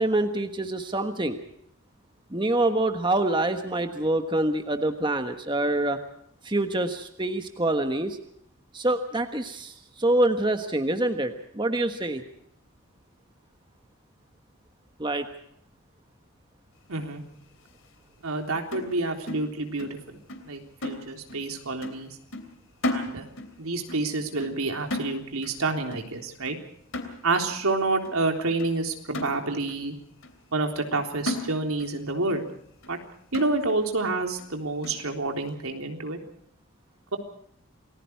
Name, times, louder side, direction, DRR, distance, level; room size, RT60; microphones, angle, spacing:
voice 1, 0.0-1.4 2.3-6.0 6.4-8.2 8.7-9.7 10.0-12.2 15.0-15.2, right 1 dB, 20° right, 7 dB, 1.3 m, -26 dB
voice 2, 16.9-17.2 18.2-20.0 20.5-22.2 22.9-23.3 23.6-26.6 27.2-29.9 30.5-32.4 32.9-33.0 33.3-36.2 37.1-37.2, right 3 dB, 85° right, 4 dB, 3.6 m, -28 dB
sound 1, 18.7-20.0 20.3-20.5 20.8-21.5 21.8-22.1 22.3-23.6 23.9-24.1 24.4-24.7 24.9-25.6 25.9-26.2 26.5-26.6 26.9-27.6 28.1-28.2 28.6-28.7 29.1-29.8 30.2-30.3 30.8-30.9 31.3-32.0 32.3-32.4 32.8-33.0 33.3-33.9 34.4-34.5 34.8-35.1, left 1 dB, 65° left, 3.3 m, -35 dB
28.5 x 20.0 x 4.7 m, 0.69 s
head